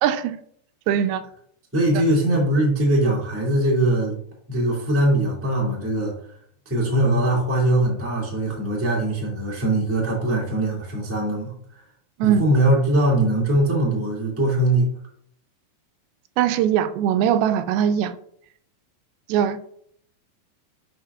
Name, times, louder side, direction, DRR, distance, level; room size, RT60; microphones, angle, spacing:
voice 1, 0.0-0.4 0.9-1.2 12.2-12.5 16.4-18.1 19.3-19.6, right 9 dB, 90° right, 10 dB, 2.5 m, -21 dB
voice 2, 1.7-4.2 4.5-6.1 6.6-11.5 12.2-14.9, right 1 dB, 20° right, -4 dB, 0.4 m, -21 dB
10.0 x 4.1 x 2.3 m, 0.65 s
omnidirectional pair, 4.3 m